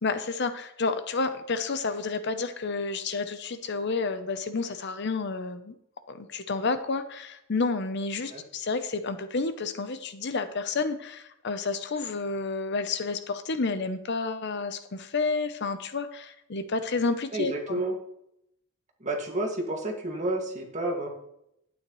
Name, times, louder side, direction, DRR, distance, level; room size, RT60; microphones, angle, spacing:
voice 1, 0.0-5.7 6.1-17.8, left 4 dB, 55° left, 10 dB, 0.7 m, -30 dB
voice 2, 17.3-17.9 19.0-21.1, right 1 dB, 35° right, 0 dB, 2.0 m, -30 dB
11.5 x 9.4 x 3.1 m, 0.78 s
head